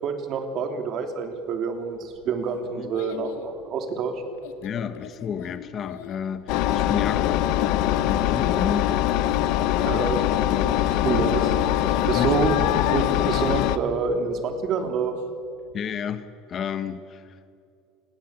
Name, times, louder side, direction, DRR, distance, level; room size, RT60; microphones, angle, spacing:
voice 1, 0.0-4.2 9.8-10.2 10.6-11.6 11.8-12.6 12.9-15.1, right 5 dB, 35° right, 6 dB, 3.2 m, -27 dB
Child speech kid speaking, 1.8-14.4 14.8-15.2 15.7-15.8, left 12 dB, 85° left, 2.3 m, -38 dB
voice 2, 4.6-7.5 8.0-8.9 9.9-10.1 12.1-12.5 15.7-17.5, left 7 dB, 30° left, 12 dB, 1.0 m, -31 dB
Engine, 6.5-13.8, left 12 dB, 55° left, 1.2 m, -23 dB
28.0 x 21.5 x 8.9 m, 2.5 s
cardioid pair, 170°, 0 cm